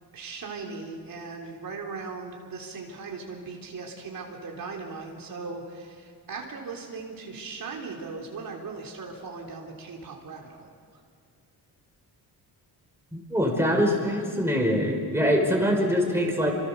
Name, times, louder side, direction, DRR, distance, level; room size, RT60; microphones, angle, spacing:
voice 1, 0.1-10.7, right 4 dB, 60° right, 0 dB, 3.7 m, -38 dB
voice 2, 13.1-16.5, equal, 5° right, 1 dB, 5.3 m, -24 dB
29.5 x 26.5 x 7.0 m, 2.1 s
cardioid pair, 130°, 39 cm